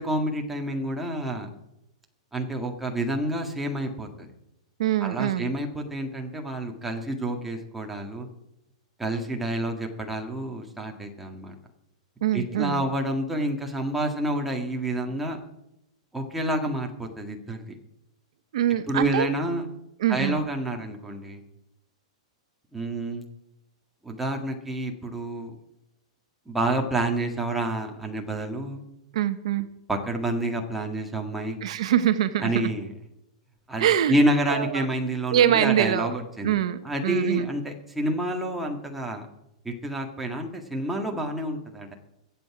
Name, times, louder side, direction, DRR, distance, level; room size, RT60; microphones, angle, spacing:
voice 1, 0.0-1.5 2.3-4.3 5.0-8.3 9.0-11.5 12.3-15.4 16.1-17.8 18.9-19.7 20.1-21.4 22.7-23.2 24.0-25.6 26.5-28.8 29.9-31.8 32.4-32.9 33.7-36.6 36.8-39.3 39.7-41.9, right 1 dB, 5° right, 1 dB, 1.8 m, -29 dB
voice 2, 4.8-5.5 12.2-12.8 18.5-19.3 20.0-20.4 29.1-29.7 31.6-32.5 33.8-34.2 34.5-34.9 35.3-36.1 36.4-37.5, right 11 dB, 65° right, 11 dB, 0.9 m, -24 dB
23.0 x 8.2 x 4.9 m, 0.84 s
supercardioid pair, 155°, 4 cm